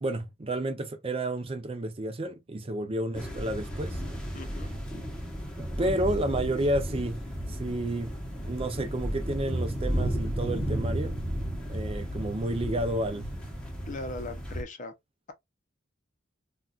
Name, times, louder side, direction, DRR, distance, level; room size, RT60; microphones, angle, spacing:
voice 1, 0.0-4.0 5.6-7.2 7.5-8.1 8.4-11.2 11.7-13.3, right 1 dB, 30° right, 0.5 m, -31 dB
sound 1, 3.1-14.6, equal, 5° left, 0.9 m, -33 dB
voice 2, 4.3-4.7 13.8-14.9, left 2 dB, 40° left, 0.6 m, -39 dB
4.0 x 2.3 x 2.3 m
head